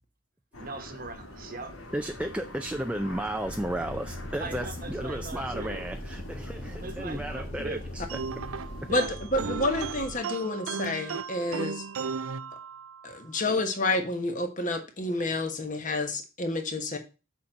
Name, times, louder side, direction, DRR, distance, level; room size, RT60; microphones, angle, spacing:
sound 1, 0.5-9.0, left 1 dB, 85° left, 2.0 m, -45 dB
voice 1, 0.6-1.8 4.4-5.8 6.6-7.8 8.9-9.1, right 3 dB, 45° right, 1.2 m, -40 dB
voice 2, 1.9-8.0, right 1 dB, 5° right, 0.4 m, -33 dB
sound 2, 3.4-10.2, left 1 dB, 60° left, 1.6 m, -41 dB
sound 3, 8.1-13.2, right 5 dB, 80° right, 0.5 m, -35 dB
voice 3, 9.3-11.9 13.0-17.0, left 2 dB, 40° left, 1.3 m, -29 dB
6.8 x 4.5 x 6.5 m
head